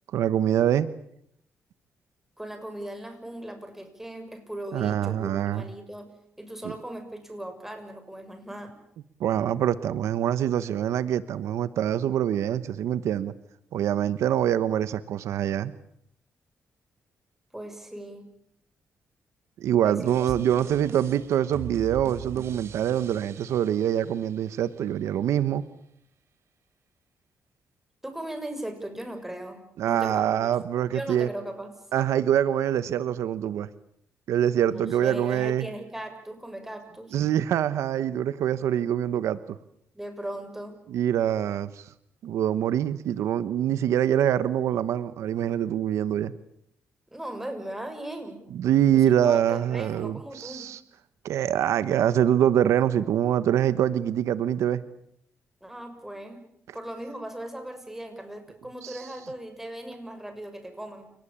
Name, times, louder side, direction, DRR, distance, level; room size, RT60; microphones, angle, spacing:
voice 1, 0.1-0.9 4.7-5.7 6.6-6.7 9.2-13.3 13.7-15.7 19.6-25.7 29.8-31.3 31.9-33.7 34.3-35.7 37.1-39.6 40.9-41.9 42.2-46.3 48.5-50.8 51.2-54.8 58.8-59.1, right 10 dB, 85° right, 14 dB, 1.1 m, -25 dB
voice 2, 2.4-6.1 6.4-8.8 17.5-18.2 19.8-20.6 28.0-30.5 30.9-31.7 34.6-37.2 39.9-40.8 47.1-48.4 48.9-50.7 55.6-56.4 56.7-61.1, right 1 dB, 5° right, 7 dB, 6.5 m, -38 dB
sound 1, 20.1-25.0, right 7 dB, 65° right, 3.4 m, -42 dB
29.5 x 19.0 x 8.8 m, 0.73 s
cardioid pair, 95°, 5 cm